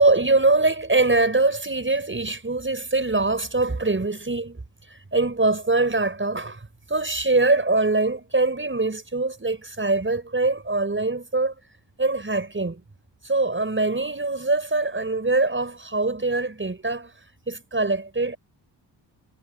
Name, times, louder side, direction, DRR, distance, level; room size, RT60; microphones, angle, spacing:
voice 1, 0.0-4.6 4.9-11.6 12.0-12.8 13.2-17.1 17.5-18.4, right 3 dB, 25° right, 6.4 m, -23 dB
supercardioid pair, 55°, 48 cm